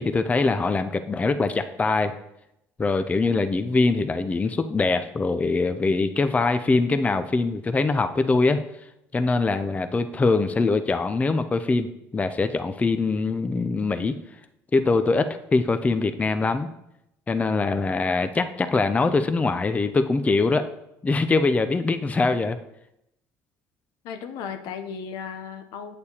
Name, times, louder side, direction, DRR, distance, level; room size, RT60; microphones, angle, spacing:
voice 1, 0.0-2.1 2.8-8.6 9.1-11.9 12.1-14.1 14.7-16.7 17.3-20.7 21.0-22.6, left 3 dB, 20° left, 9 dB, 0.5 m, -23 dB
voice 2, 24.0-26.0, left 7 dB, 70° left, 8 dB, 0.7 m, -35 dB
8.1 x 6.7 x 2.8 m, 0.82 s
supercardioid pair, 80°, 7 cm